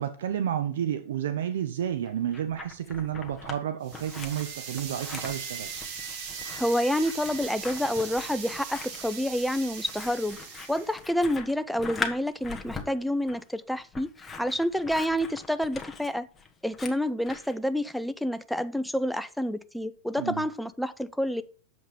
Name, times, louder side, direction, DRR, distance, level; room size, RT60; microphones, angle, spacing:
voice 1, 0.0-5.7 20.2-20.4, right 10 dB, 75° right, 0.7 m, -31 dB
Scissors, 2.0-3.6 3.9-17.6, left 4 dB, 15° left, 1.4 m, -41 dB
sound 1, 3.8-11.0, right 6 dB, 55° right, 2.3 m, -39 dB
voice 2, 6.6-10.4 10.7-14.1 14.4-16.3 16.6-21.4, equal, ahead, 0.5 m, -28 dB
7.7 x 5.1 x 5.1 m
hypercardioid pair, 105°, 0 cm